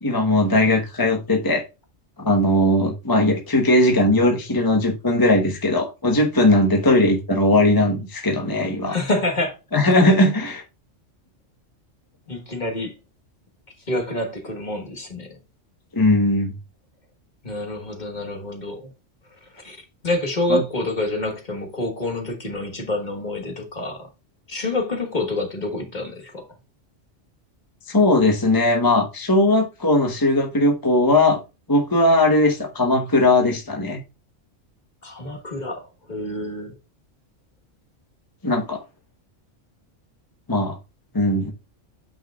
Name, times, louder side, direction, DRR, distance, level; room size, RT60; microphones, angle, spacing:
voice 1, 0.0-1.6 2.2-8.9 9.7-10.6 15.9-16.5 20.5-20.6 27.9-31.4 31.7-34.0 38.4-38.8 40.5-40.8 41.1-41.5, left 1 dB, 20° left, 1.0 m, -19 dB
voice 2, 8.8-9.6 9.9-10.1 12.3-12.9 13.9-15.4 17.4-18.9 19.4-24.1 24.5-26.5 35.0-36.8, left 2 dB, 35° left, 1.5 m, -27 dB
8.8 x 6.0 x 2.4 m
omnidirectional pair, 1.3 m